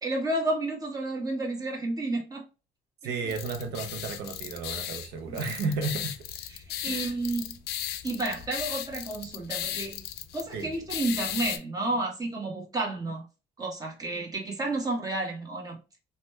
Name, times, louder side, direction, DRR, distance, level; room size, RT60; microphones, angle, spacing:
voice 1, 0.0-2.4 3.0-3.1 6.5-7.6 8.0-10.0 10.3-13.2 13.6-15.8, right 2 dB, 20° right, 1.2 m, -31 dB
voice 2, 3.0-6.2 6.9-7.1 10.5-10.7, right 4 dB, 80° right, 0.6 m, -33 dB
sound 1, 3.3-11.6, left 11 dB, 75° left, 0.4 m, -36 dB
3.1 x 2.2 x 3.0 m
cardioid pair, 110°, 17 cm